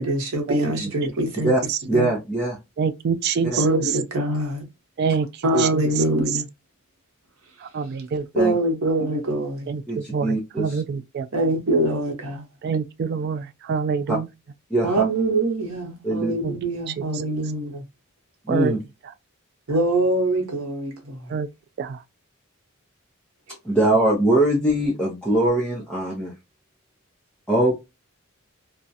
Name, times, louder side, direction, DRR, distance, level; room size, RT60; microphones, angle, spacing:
voice 1, 0.0-1.5 1.9-2.1 3.6-4.6 5.4-6.4 8.3-9.7 11.3-12.4 14.8-17.8 19.7-21.3, right 1 dB, 70° right, 0.9 m, -24 dB
voice 2, 1.9-2.6 3.4-3.6 5.5-5.7 8.3-8.5 9.9-10.8 14.1-14.2 14.7-15.0 16.0-16.3 18.5-18.8 23.6-26.3 27.5-27.7, right 1 dB, 5° left, 0.6 m, -22 dB
voice 3, 2.8-3.6 5.0-5.3 5.6-5.8 7.6-8.3 9.7-11.3 12.6-14.3 16.4-16.5 17.0-17.1 18.5-18.8 21.3-21.5 21.8-22.0, right 6 dB, 50° right, 0.3 m, -26 dB
2.3 x 2.1 x 2.6 m
head